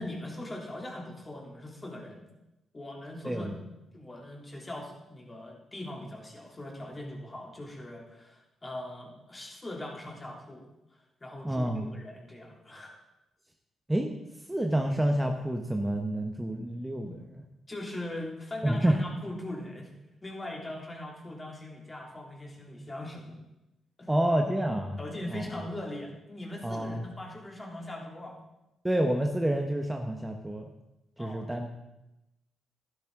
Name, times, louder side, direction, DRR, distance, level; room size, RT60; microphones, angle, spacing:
voice 1, 0.0-2.3 2.7-3.5 3.9-10.6 11.2-12.9 17.1-17.2 17.7-19.9 20.2-23.4 24.0-24.1 25.0-28.4 31.2-31.5, left 1 dB, 25° left, -1 dB, 3.0 m, -40 dB
voice 2, 3.2-3.6 11.4-11.9 13.9-14.1 14.5-17.2 18.6-19.0 24.1-25.0 25.3-25.4 26.6-27.0 28.8-30.7 31.2-31.8, right 1 dB, 10° right, 3 dB, 1.0 m, -28 dB
11.5 x 11.0 x 3.7 m, 0.95 s
supercardioid pair, 65°, 0 cm